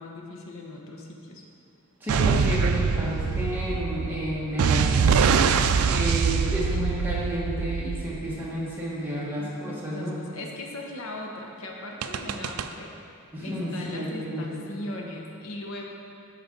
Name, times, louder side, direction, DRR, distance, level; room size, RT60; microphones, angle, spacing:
voice 1, 0.0-1.5 3.5-3.9 6.7-6.8 9.4-12.9 13.4-15.9, left 1 dB, 75° left, 0 dB, 0.9 m, -39 dB
voice 2, 2.0-5.1 5.9-10.1 13.3-14.7, equal, 10° right, -7 dB, 1.5 m, -31 dB
sound 1, 2.1-8.5 12.0-12.7, right 5 dB, 80° right, 0.4 m, -24 dB
12.0 x 5.1 x 3.9 m, 2.5 s
head